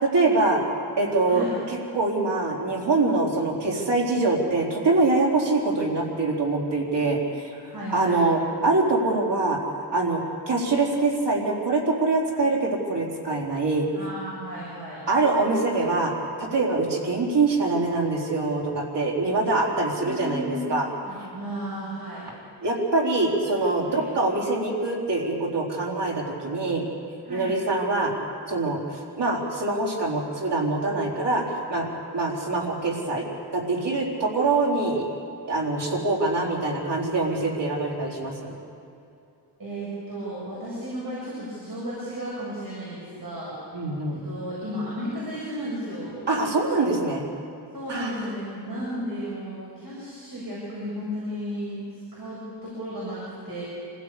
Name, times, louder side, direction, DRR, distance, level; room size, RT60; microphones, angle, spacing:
voice 1, 0.0-0.6 1.0-7.6 7.9-9.6 9.9-13.9 15.1-16.1 16.4-20.9 22.6-26.9 27.3-28.1 28.5-31.4 31.7-33.3 33.5-35.1 35.5-38.6 43.7-44.2 46.3-47.2 47.9-48.2, right 3 dB, 75° right, -2 dB, 4.2 m, -24 dB
voice 2, 7.7-8.2 13.9-15.0 20.0-20.8 21.1-22.3 23.9-24.0 27.2-27.5 39.6-43.6 44.1-46.3 47.7-53.6, equal, 55° right, -6 dB, 7.7 m, -34 dB
26.5 x 16.5 x 8.5 m, 2.6 s
wide cardioid pair, 100°, 42 cm